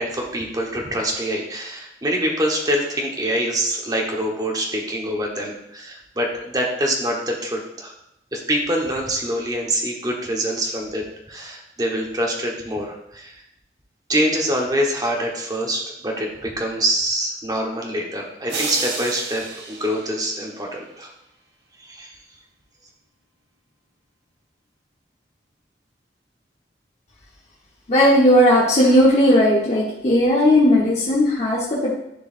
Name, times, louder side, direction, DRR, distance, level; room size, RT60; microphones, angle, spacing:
voice 1, 0.0-7.9 8.3-13.3 14.1-21.1 21.8-22.1, right 1 dB, 20° right, 0 dB, 1.1 m, -25 dB
sound 1, 18.5-20.8, right 4 dB, 80° right, 1.1 m, -31 dB
voice 2, 27.9-31.9, left 1 dB, 40° left, -6 dB, 1.1 m, -16 dB
10.5 x 4.7 x 2.5 m, 0.81 s
head